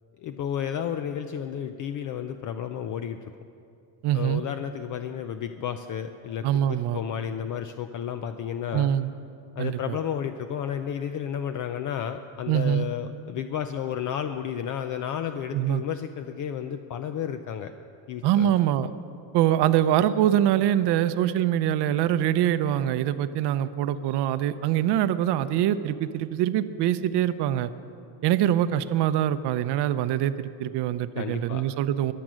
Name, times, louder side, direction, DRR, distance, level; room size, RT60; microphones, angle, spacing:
voice 1, 0.2-3.2 4.1-8.9 9.6-17.7 18.1-18.5 31.2-31.6, left 9 dB, 45° left, 9 dB, 0.5 m, -32 dB
voice 2, 4.0-4.4 6.4-7.0 8.7-9.1 9.6-10.0 12.5-12.9 15.5-15.8 18.2-18.9 19.3-27.7 28.2-32.1, right 11 dB, 60° right, 13 dB, 0.7 m, -24 dB
22.5 x 7.7 x 6.2 m, 2.5 s
cardioid pair, 150°, 46 cm